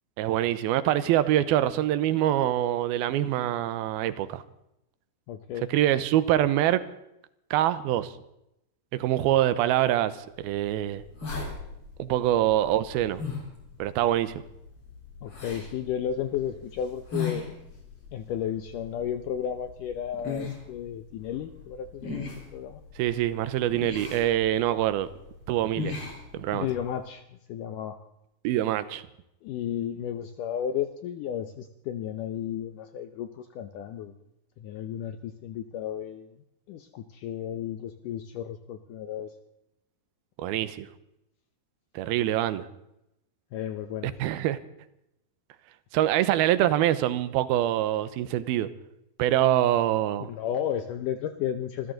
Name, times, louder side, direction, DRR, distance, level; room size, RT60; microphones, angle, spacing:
voice 1, 0.2-4.4 5.7-6.8 7.5-8.1 8.9-11.0 12.0-13.2 13.8-14.4 23.0-25.1 25.5-26.0 26.3-26.7 28.4-29.0 40.4-40.9 42.0-42.7 44.2-44.6 45.9-48.7 49.2-50.3, right 13 dB, 80° right, 14 dB, 2.7 m, -25 dB
voice 2, 5.3-5.7 15.2-17.6 18.1-22.8 26.5-28.0 29.4-34.1 34.6-36.3 36.7-39.3 43.5-44.1 50.2-51.9, left 9 dB, 75° left, 9 dB, 2.0 m, -33 dB
sound 1, 10.3-26.9, left 4 dB, 35° left, 4.5 m, -40 dB
26.0 x 14.0 x 3.9 m, 0.85 s
omnidirectional pair, 4.5 m